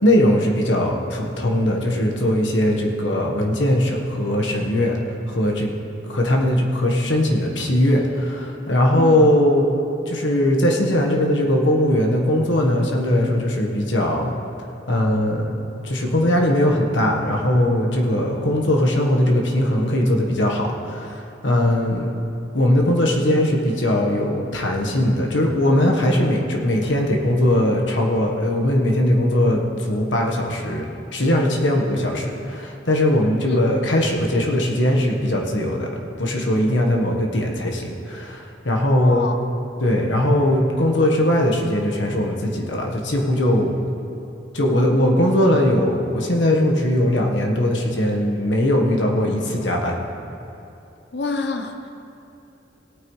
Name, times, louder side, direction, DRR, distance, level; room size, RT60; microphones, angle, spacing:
voice 1, 0.0-5.0 5.3-5.7 6.1-9.7 10.1-14.3 14.9-22.1 22.5-30.9 31.1-35.9 36.2-39.2 39.8-43.8 44.5-50.0, left 1 dB, 85° left, 0 dB, 1.3 m, -20 dB
voice 2, 8.9-9.3 33.4-33.6 39.0-39.4 49.2-49.4 51.1-51.9, left 3 dB, 65° left, 6 dB, 0.8 m, -28 dB
17.5 x 9.0 x 3.2 m, 2.8 s
head